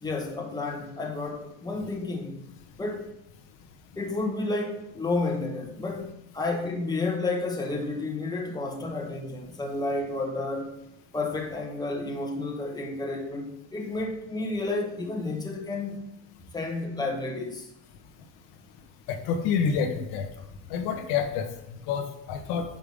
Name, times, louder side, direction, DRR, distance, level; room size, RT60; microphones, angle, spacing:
voice 1, 0.0-2.5 2.8-3.2 4.0-10.8 11.1-16.1 16.5-17.7, left 2 dB, 10° left, 1.3 m, -31 dB
voice 2, 19.1-20.2 20.7-21.5 21.9-22.6, left 6 dB, 85° left, 1.4 m, -27 dB
9.2 x 5.9 x 3.5 m
cardioid pair, 125°, 36 cm